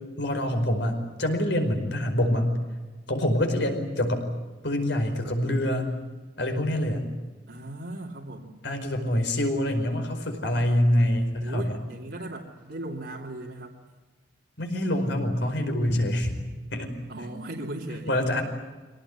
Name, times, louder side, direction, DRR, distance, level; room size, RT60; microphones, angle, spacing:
voice 1, 0.2-2.6 3.1-4.2 4.6-5.9 6.4-7.0 8.6-11.8 14.6-16.4 16.7-16.9 18.1-18.4, left 1 dB, 70° left, 5 dB, 5.0 m, -25 dB
voice 2, 7.5-8.5 11.4-13.8 17.1-18.2, right 1 dB, 75° right, -4 dB, 2.8 m, -37 dB
24.5 x 18.5 x 9.8 m, 1.3 s
head